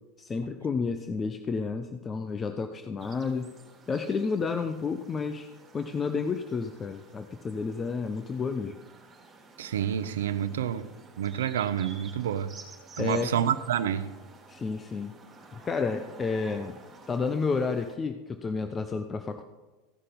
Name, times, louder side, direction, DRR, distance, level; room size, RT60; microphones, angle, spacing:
voice 1, 0.2-3.5 3.9-8.8 13.0-13.3 14.5-15.1 15.7-16.8 17.1-19.4, left 4 dB, 25° left, 0.6 m, -31 dB
sound 1, 3.0-17.9, right 3 dB, 25° right, 3.3 m, -52 dB
voice 2, 9.6-10.9 11.2-12.5 13.0-14.1, right 9 dB, 85° right, 0.6 m, -28 dB
15.5 x 5.6 x 5.3 m
hypercardioid pair, 95°, 0 cm